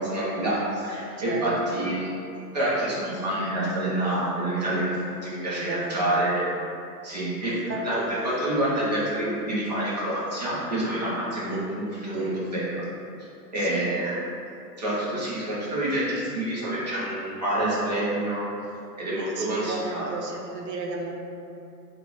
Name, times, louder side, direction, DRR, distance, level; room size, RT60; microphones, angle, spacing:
voice 1, 0.0-2.1 2.5-4.9 5.2-6.4 7.0-12.8 13.5-14.1 14.8-18.5 19.0-20.0, right 1 dB, 25° right, -8 dB, 0.5 m, -27 dB
voice 2, 5.6-6.3 7.5-8.3 13.6-13.8 19.1-21.1, right 3 dB, 75° right, 0 dB, 0.7 m, -34 dB
3.7 x 2.2 x 3.8 m, 2.7 s
hypercardioid pair, 160°, 50 cm